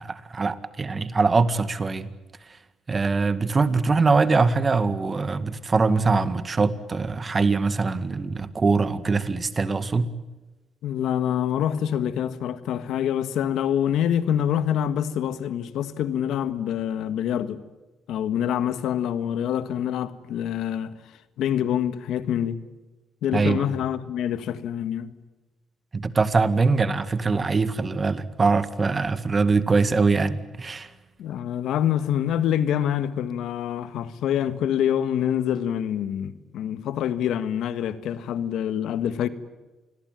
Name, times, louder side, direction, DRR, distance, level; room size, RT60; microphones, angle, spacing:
voice 1, 0.0-2.1 2.9-10.1 23.3-23.7 25.9-30.9, right 4 dB, 30° right, 1.9 m, -23 dB
voice 2, 10.8-17.6 18.1-20.9 21.4-22.6 23.2-25.1 31.2-39.3, left 10 dB, 80° left, 1.6 m, -26 dB
28.0 x 21.5 x 9.2 m
cardioid pair, 90°, 0 cm